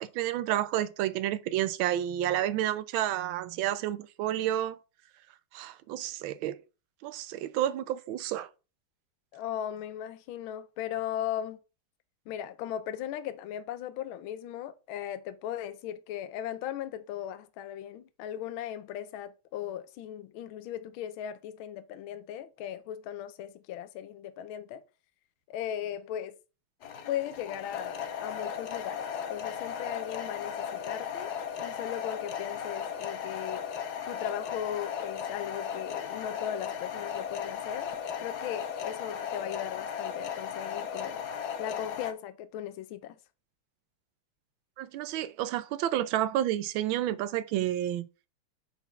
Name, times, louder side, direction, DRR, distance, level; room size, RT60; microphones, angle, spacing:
voice 1, 0.0-4.8 5.5-6.6 7.0-8.5 44.8-48.0, right 12 dB, 75° right, 1.4 m, -30 dB
voice 2, 9.3-11.6 12.3-24.8 25.5-26.4 27.1-33.7 34.1-37.9 38.2-41.3 41.6-43.2, left 10 dB, 75° left, 1.4 m, -38 dB
sound 1, 26.8-42.1, left 8 dB, 60° left, 1.1 m, -36 dB
5.7 x 4.2 x 5.8 m
omnidirectional pair, 2.4 m